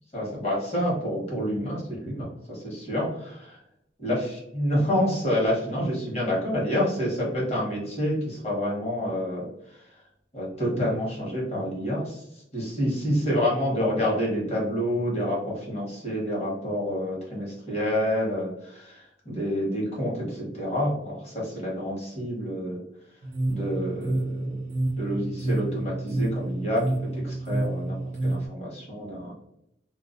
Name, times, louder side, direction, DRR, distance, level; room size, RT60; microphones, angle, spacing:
voice 1, 0.1-3.6 4.0-9.8 10.3-12.2 12.5-22.8 23.5-24.6 25.0-29.3, equal, 35° left, -5 dB, 1.0 m, -28 dB
sound 1, 23.2-28.5, right 2 dB, 45° right, 0.4 m, -29 dB
2.3 x 2.2 x 2.4 m, 0.78 s
head